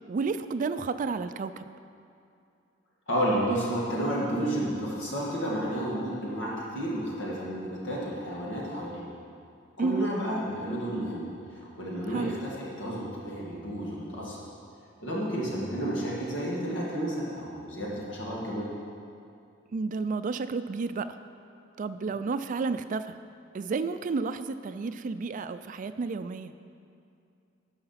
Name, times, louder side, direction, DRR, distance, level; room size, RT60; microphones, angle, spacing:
voice 1, 0.1-1.6 9.8-10.1 12.1-12.4 19.7-21.1 21.8-23.2 23.5-26.5, right 4 dB, 45° right, 11 dB, 0.4 m, -31 dB
voice 2, 3.1-9.0 9.8-14.4 15.0-18.7, equal, 70° left, -5 dB, 1.9 m, -31 dB
12.5 x 4.9 x 5.7 m, 2.5 s
head